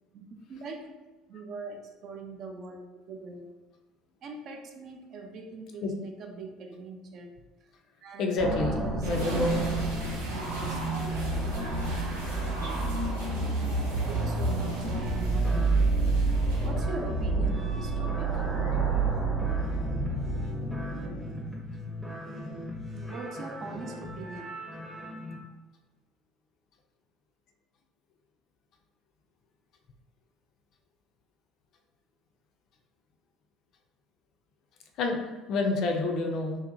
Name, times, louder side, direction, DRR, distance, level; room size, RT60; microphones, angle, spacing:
voice 1, 0.1-0.9 1.3-3.5 4.2-7.3 8.0-9.8 10.3-11.2 11.5-11.7 14.0-15.8 16.6-18.4 19.6-19.8 20.3-20.6 22.9-24.6, right 3 dB, 50° right, 2 dB, 0.4 m, -42 dB
voice 2, 8.2-8.8 9.0-9.5 35.0-35.2 35.5-36.6, left 3 dB, 50° left, 2 dB, 0.4 m, -27 dB
sound 1, 8.4-21.4, right 3 dB, 30° right, 0.9 m, -29 dB
sound 2, 9.0-16.7, right 1 dB, 90° right, 0.8 m, -40 dB
sound 3, 14.8-25.4, left 2 dB, 5° right, 0.6 m, -39 dB
2.6 x 2.0 x 2.5 m, 1.2 s
figure-of-eight pair, 60°, 0 cm